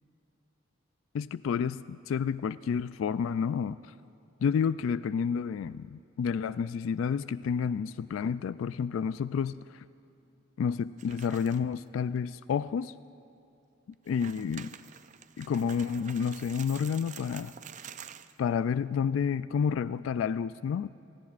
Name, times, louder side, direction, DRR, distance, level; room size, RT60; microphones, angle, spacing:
voice 1, 1.1-3.8 4.4-9.8 10.6-12.9 14.1-14.7 15.4-17.5 18.4-21.1, left 6 dB, 85° left, 16 dB, 0.3 m, -30 dB
sound 1, 11.0-11.7 12.2-12.3 12.8-12.9 13.9-18.4, right 8 dB, 40° right, 0.4 m, -47 dB
27.5 x 17.5 x 2.5 m, 2.8 s
head